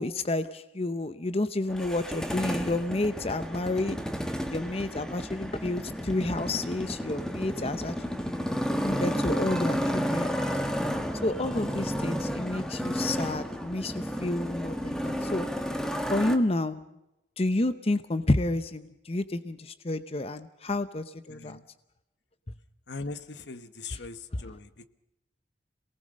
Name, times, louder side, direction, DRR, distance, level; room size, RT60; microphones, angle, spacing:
voice 1, 0.0-4.0 4.5-10.4 11.2-15.5 16.1-16.8 17.4-21.6 23.9-24.0, left 2 dB, 35° left, 12 dB, 0.8 m, -30 dB
Motorcycle, 1.7-16.4, equal, 5° left, 1.5 m, -32 dB
voice 2, 21.3-21.6 22.9-24.9, left 3 dB, 70° left, 12 dB, 1.1 m, -40 dB
27.5 x 19.0 x 6.5 m, 0.89 s
head